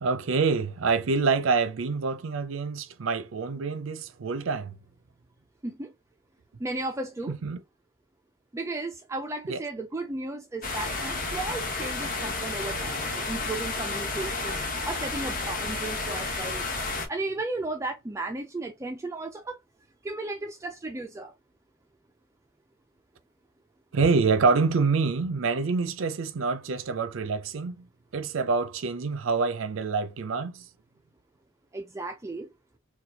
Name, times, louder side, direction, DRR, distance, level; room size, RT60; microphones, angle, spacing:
voice 1, 0.0-4.8 7.4-7.6 9.5-9.6 23.9-27.9 28.1-30.6, right 4 dB, 70° right, 0.5 m, -26 dB
voice 2, 6.6-7.3 8.5-16.7 17.1-19.6 20.0-21.3 31.7-32.5, right 2 dB, 15° right, 0.3 m, -35 dB
sound 1, 10.6-17.1, left 3 dB, 40° left, 1.2 m, -31 dB
4.2 x 2.3 x 2.7 m
head